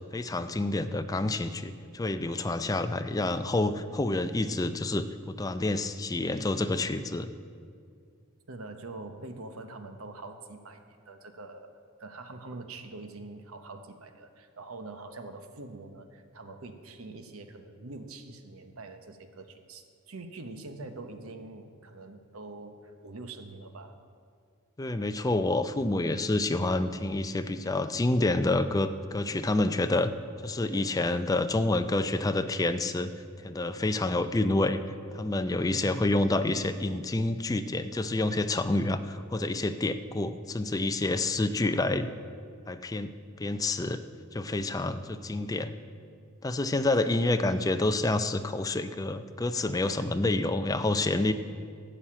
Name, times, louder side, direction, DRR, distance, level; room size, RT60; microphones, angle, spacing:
voice 1, 0.1-7.3 24.8-30.1 30.4-33.1 33.4-34.8 35.1-42.1 42.7-43.1 43.4-44.0 44.3-45.7 46.4-51.3, left 2 dB, 15° left, 10 dB, 0.4 m, -28 dB
voice 2, 8.5-11.7 12.0-24.0 35.7-36.1 47.0-47.2, right 2 dB, 75° right, 7 dB, 1.0 m, -44 dB
13.0 x 5.7 x 8.7 m, 2.2 s
head